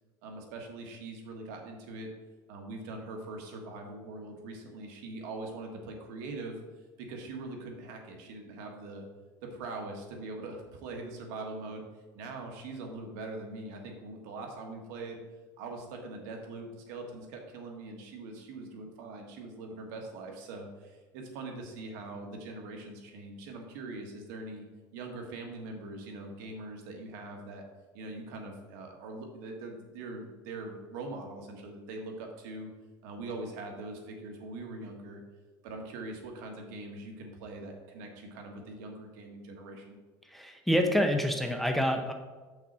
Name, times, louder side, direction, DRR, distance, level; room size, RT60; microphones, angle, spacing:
voice 1, 0.2-2.1 2.5-6.6 7.0-9.0 9.4-11.8 12.1-15.2 15.6-24.6 24.9-27.6 27.9-32.7 33.0-35.2 35.6-39.9, right 2 dB, 85° right, 2 dB, 1.6 m, -42 dB
voice 2, 40.3-42.1, equal, ahead, 4 dB, 0.6 m, -27 dB
7.3 x 5.9 x 4.2 m, 1.3 s
cardioid pair, 150°, 10 cm